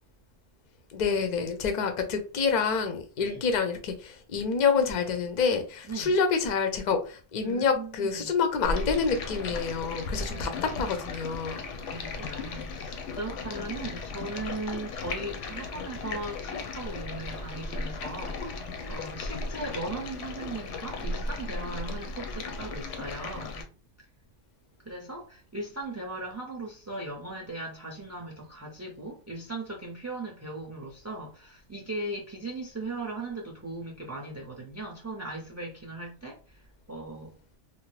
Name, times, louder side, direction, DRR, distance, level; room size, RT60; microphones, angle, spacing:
voice 1, 0.9-11.6, left 5 dB, 50° left, 0.6 m, -27 dB
voice 2, 5.8-6.2 7.4-8.3 10.3-11.1 11.9-23.7 24.8-37.3, right 2 dB, 20° right, 0.4 m, -38 dB
Stream, 8.6-23.6, left 3 dB, 85° left, 0.9 m, -36 dB
3.0 x 2.0 x 3.1 m
omnidirectional pair, 1.2 m